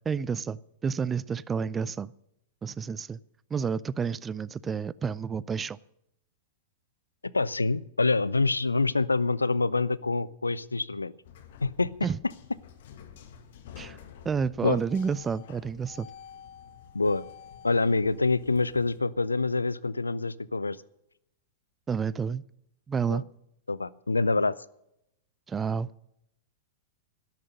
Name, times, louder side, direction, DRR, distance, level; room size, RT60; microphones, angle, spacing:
voice 1, 0.1-2.1 2.6-3.2 3.5-5.8 12.0-12.2 13.8-14.0 14.2-16.1 21.9-22.4 22.9-23.2 25.5-25.9, right 6 dB, 20° right, 22 dB, 0.4 m, -30 dB
voice 2, 7.3-11.1 11.6-11.9 14.6-14.8 16.9-17.2 17.6-20.8 23.0-23.2 23.7-24.5, left 3 dB, 85° left, 21 dB, 0.5 m, -26 dB
sound 1, 11.2-19.0, left 8 dB, 55° left, 1.8 m, -49 dB
12.0 x 12.0 x 6.5 m, 0.78 s
figure-of-eight pair, 100°, 0 cm